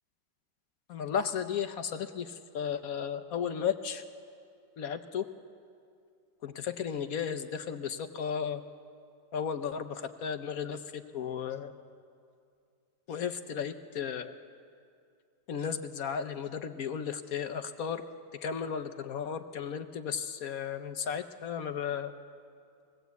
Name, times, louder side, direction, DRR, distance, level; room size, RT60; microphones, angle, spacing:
voice 1, 0.9-4.0 4.8-5.3 6.4-8.6 9.3-11.7 13.1-14.4 15.5-18.0 18.4-22.1, left 7 dB, 60° left, 9 dB, 1.0 m, -34 dB
21.5 x 17.5 x 8.1 m, 2.4 s
omnidirectional pair, 2.0 m